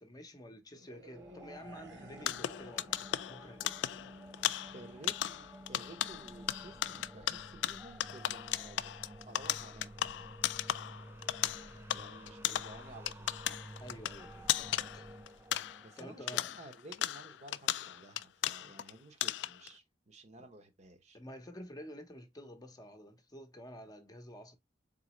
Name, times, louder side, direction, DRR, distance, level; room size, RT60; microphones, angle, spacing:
voice 1, 0.0-3.8 13.8-15.2 16.0-16.5 20.4-20.5 21.1-24.6, equal, 20° left, 0.7 m, -50 dB
sound 1, 0.7-3.4 3.7-4.0, right 1 dB, 85° right, 1.0 m, -55 dB
sound 2, 1.1-17.4, right 1 dB, 15° right, 0.4 m, -52 dB
sound 3, 2.2-16.0 16.3-18.9 19.2-19.7, left 12 dB, 75° left, 0.3 m, -36 dB
voice 2, 4.7-10.3 11.9-13.6 15.8-21.2, right 2 dB, 40° right, 0.7 m, -54 dB
4.0 x 3.8 x 3.0 m
head